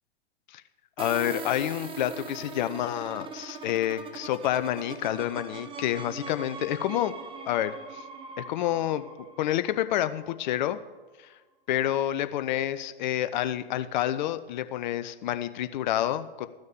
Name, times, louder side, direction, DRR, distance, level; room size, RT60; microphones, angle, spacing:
voice 1, 1.0-7.1 7.5-8.0 8.4-9.0 9.4-10.8 11.7-16.5, left 12 dB, 50° left, 12 dB, 0.7 m, -28 dB
sound 1, 1.0-10.6, right 5 dB, 15° right, 0.9 m, -41 dB
14.0 x 6.4 x 6.6 m, 1.2 s
figure-of-eight pair, 105°, 31 cm